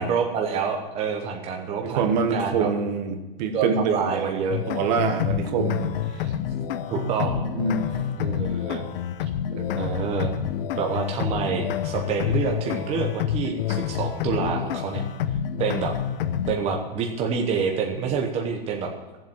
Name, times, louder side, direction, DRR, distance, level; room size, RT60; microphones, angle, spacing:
voice 1, 0.0-2.7 3.5-4.6 6.9-7.5 8.2-8.9 9.7-10.4 10.8-15.0 15.6-15.9 16.5-18.9, right 5 dB, 20° right, 2 dB, 1.0 m, -27 dB
voice 2, 1.8-4.4 4.7-6.3 7.2-7.9 9.5-9.7, right 5 dB, 50° right, 7 dB, 1.4 m, -26 dB
sound 1, 4.5-16.5, left 9 dB, 75° left, 0.8 m, -28 dB
13.5 x 7.6 x 7.3 m, 1.2 s
supercardioid pair, 160°, 29 cm